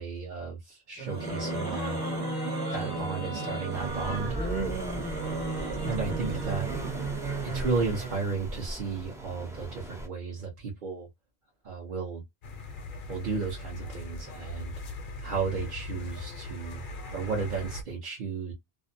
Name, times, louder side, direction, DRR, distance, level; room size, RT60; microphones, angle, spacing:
voice 1, 0.0-2.0 2.7-4.3 5.8-6.7 7.4-11.1 11.6-12.2 13.1-14.7 15.2-16.8 17.1-18.5, right 4 dB, 50° right, 0.9 m, -33 dB
sound 1, 1.0-8.3, right 3 dB, 25° right, 0.8 m, -33 dB
sound 2, 3.7-10.1, right 1 dB, 5° right, 0.4 m, -39 dB
sound 3, 12.4-17.8, left 2 dB, 60° left, 0.7 m, -40 dB
2.6 x 2.0 x 2.5 m
omnidirectional pair, 1.1 m